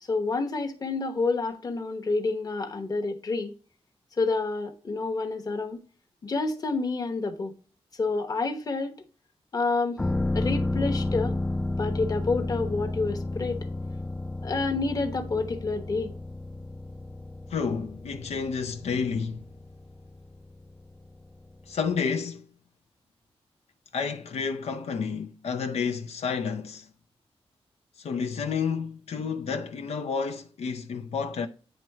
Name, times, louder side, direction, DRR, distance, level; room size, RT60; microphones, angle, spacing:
voice 1, 0.0-3.5 4.2-5.8 6.2-7.5 7.9-9.0 9.5-10.0 10.3-11.4 11.8-13.6 14.4-16.1, left 3 dB, 35° left, 1.0 m, -28 dB
sound 1, 10.0-21.5 21.9-22.0, left 2 dB, 10° left, 0.3 m, -32 dB
voice 2, 17.5-19.5 21.7-22.5 23.9-26.9 28.0-31.5, left 5 dB, 90° left, 0.6 m, -30 dB
9.1 x 3.1 x 4.7 m
wide cardioid pair, 150°, 11 cm